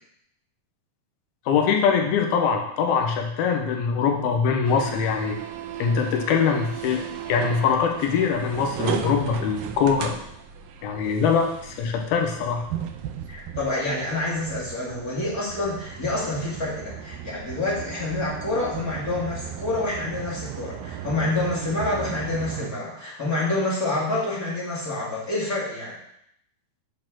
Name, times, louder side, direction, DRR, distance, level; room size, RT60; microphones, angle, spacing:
voice 1, 1.5-5.4 5.8-7.0 7.3-10.1 10.8-12.6, left 6 dB, 85° left, 2 dB, 2.9 m, -23 dB
sound 1, 4.6-22.7, right 9 dB, 80° right, 2.3 m, -36 dB
voice 2, 13.3-25.9, left 2 dB, 30° left, -6 dB, 2.0 m, -27 dB
9.3 x 4.3 x 6.0 m, 0.74 s
omnidirectional pair, 4.2 m